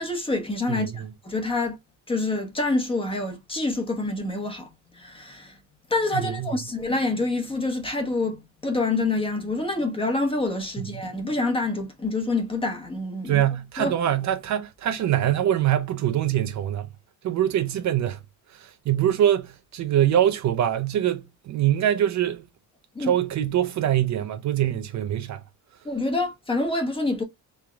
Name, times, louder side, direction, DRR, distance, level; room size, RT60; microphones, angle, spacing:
voice 1, 0.0-1.8 2.1-4.7 4.9-5.5 5.9-13.4 13.8-13.9 22.9-23.1 25.8-27.2, left 2 dB, 15° left, 1.0 m, -27 dB
voice 2, 0.7-1.1 6.1-6.6 10.8-11.0 13.2-16.9 17.2-18.2 18.5-22.4 23.0-25.4, right 11 dB, 55° right, 0.7 m, -24 dB
3.7 x 3.4 x 3.4 m
cardioid pair, 140°, 33 cm